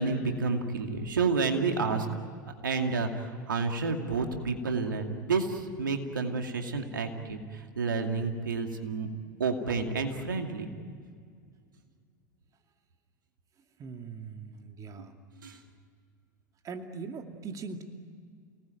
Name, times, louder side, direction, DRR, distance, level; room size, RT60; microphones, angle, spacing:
voice 1, 0.0-2.1 2.6-9.1 9.4-10.7 15.4-15.6, right 4 dB, 85° right, 4 dB, 2.4 m, -30 dB
voice 2, 13.8-15.1 16.6-17.8, right 5 dB, 35° right, 5 dB, 2.4 m, -40 dB
29.5 x 19.5 x 9.1 m, 2.2 s
hypercardioid pair, 90°, 10 cm